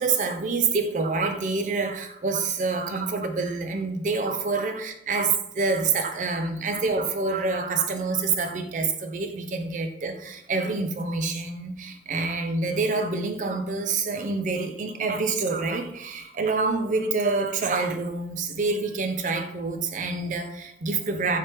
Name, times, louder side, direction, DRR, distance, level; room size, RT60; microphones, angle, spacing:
voice 1, 0.0-21.4, right 4 dB, 45° right, 6 dB, 0.4 m, -27 dB
4.4 x 3.3 x 3.0 m, 0.78 s
head